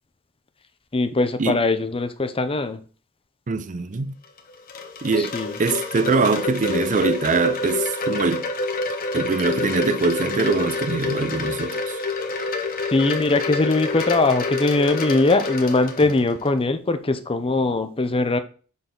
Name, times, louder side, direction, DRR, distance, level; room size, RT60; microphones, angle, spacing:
voice 1, 0.9-2.8 5.2-5.6 12.9-18.4, left 2 dB, 25° left, 0.7 m, -21 dB
voice 2, 3.5-4.1 5.0-8.4 9.1-12.0, right 4 dB, 35° right, 0.5 m, -23 dB
Wind chime, 4.2-16.5, left 3 dB, 40° left, 1.1 m, -27 dB
7.1 x 4.2 x 3.8 m
head